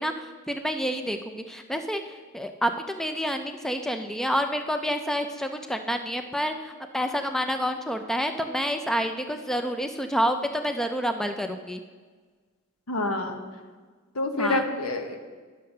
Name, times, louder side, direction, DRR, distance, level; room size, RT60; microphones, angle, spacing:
voice 1, 0.0-2.0 2.3-11.8 14.4-14.6, equal, ahead, 6 dB, 0.4 m, -28 dB
voice 2, 12.9-13.3 14.1-15.2, left 2 dB, 80° left, 5 dB, 1.2 m, -27 dB
9.9 x 6.6 x 6.6 m, 1.5 s
head